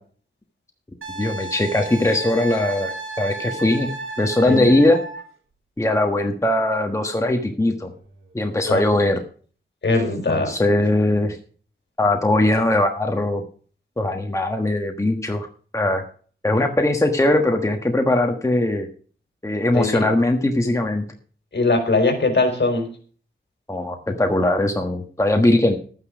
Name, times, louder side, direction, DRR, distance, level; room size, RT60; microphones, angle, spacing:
Wind instrument woodwind instrument, 1.0-5.2 7.9-8.1, right 2 dB, 80° right, 3.4 m, -33 dB
voice 1, 1.2-3.9 4.2-5.0 5.8-7.9 8.3-9.2 10.3-11.4 12.0-13.4 14.0-15.5 15.7-16.0 16.4-18.9 19.4-21.0 23.7-25.7, left 1 dB, 15° left, 4 dB, 1.4 m, -20 dB
voice 2, 4.5-4.8 8.7-8.8 9.8-10.5 19.7-20.1 21.5-22.9, left 3 dB, 55° left, 4 dB, 4.6 m, -20 dB
12.5 x 9.7 x 5.1 m, 0.43 s
wide cardioid pair, 130°, 21 cm